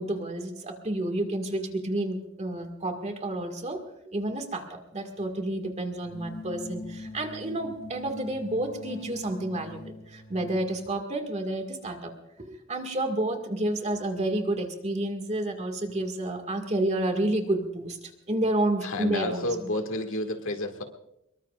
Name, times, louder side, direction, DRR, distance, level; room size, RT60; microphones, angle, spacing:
voice 1, 0.0-3.8 4.1-12.1 12.5-19.7, right 1 dB, 35° right, 5 dB, 1.9 m, -30 dB
sound 1, 6.0-10.8, left 2 dB, 45° left, 4.2 m, -42 dB
voice 2, 18.8-20.8, left 1 dB, 65° left, 5 dB, 2.0 m, -30 dB
24.5 x 22.0 x 2.5 m, 0.81 s
head